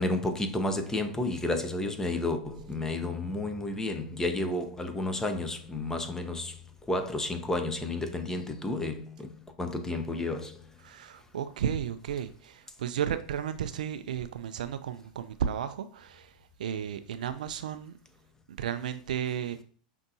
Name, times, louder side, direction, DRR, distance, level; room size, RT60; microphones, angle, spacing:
voice 1, 0.0-6.6 6.9-10.6, left 2 dB, 10° left, 0.6 m, -31 dB
voice 2, 10.8-16.3 16.6-17.9 18.5-19.6, right 9 dB, 80° right, 0.3 m, -33 dB
5.4 x 2.6 x 2.7 m
hypercardioid pair, 100°, 4 cm